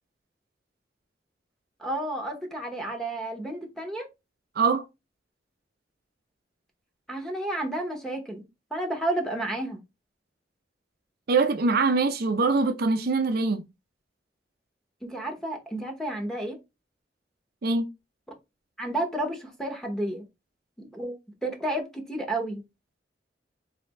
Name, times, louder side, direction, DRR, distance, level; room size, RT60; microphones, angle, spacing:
voice 1, 1.8-4.1 7.1-8.4 8.7-9.8 15.0-16.6 18.8-20.2 20.8-21.2 21.4-22.6, right 1 dB, 5° left, 0.9 m, -31 dB
voice 2, 11.3-13.6 17.6-17.9, right 4 dB, 60° right, 0.5 m, -23 dB
3.3 x 2.7 x 4.1 m
head